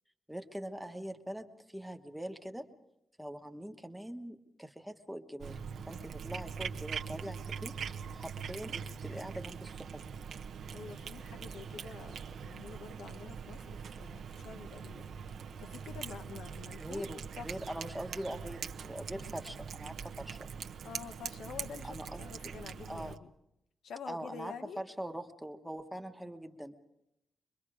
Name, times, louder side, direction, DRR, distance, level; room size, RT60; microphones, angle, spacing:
voice 1, 0.3-2.7 3.2-5.6 5.9-10.1 16.8-20.4 21.8-22.5 22.8-23.2 24.1-26.8, right 1 dB, ahead, 5 dB, 1.2 m, -43 dB
Cat, 5.4-23.2, right 6 dB, 70° right, 1.0 m, -43 dB
voice 2, 10.7-17.0 17.4-17.5 19.1-19.3 20.8-23.3 23.8-24.8, left 6 dB, 75° left, 8 dB, 1.1 m, -48 dB
25.0 x 22.5 x 4.9 m, 0.82 s
wide cardioid pair, 165°, 0 cm